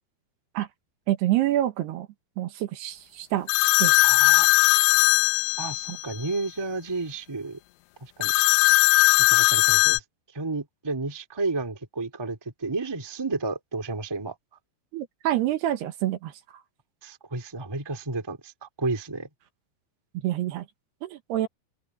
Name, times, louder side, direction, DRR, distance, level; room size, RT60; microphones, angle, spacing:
voice 1, 1.1-2.1 2.4-3.5 3.8-4.0 5.9-6.0 14.9-16.3 20.2-20.7 21.0-21.5, right 14 dB, 80° right, 3.5 m, -27 dB
sound 1, 3.5-6.0 8.2-10.0, left 18 dB, 85° left, 2.3 m, -19 dB
voice 2, 4.0-4.5 5.6-7.6 8.0-8.3 9.3-10.0 10.3-14.3 17.0-19.3, right 3 dB, 10° right, 1.3 m, -32 dB
open air
omnidirectional pair, 4.8 m